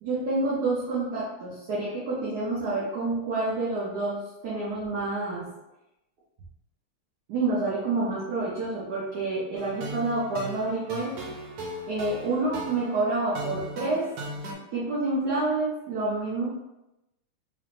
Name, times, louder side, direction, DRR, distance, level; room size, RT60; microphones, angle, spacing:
voice 1, 0.0-5.5 7.3-11.2 11.9-14.1 14.7-16.5, right 2 dB, 60° right, -7 dB, 1.1 m, -28 dB
sound 1, 9.6-14.5, right 1 dB, 90° right, 1.7 m, -38 dB
3.9 x 3.4 x 2.5 m, 0.94 s
omnidirectional pair, 2.4 m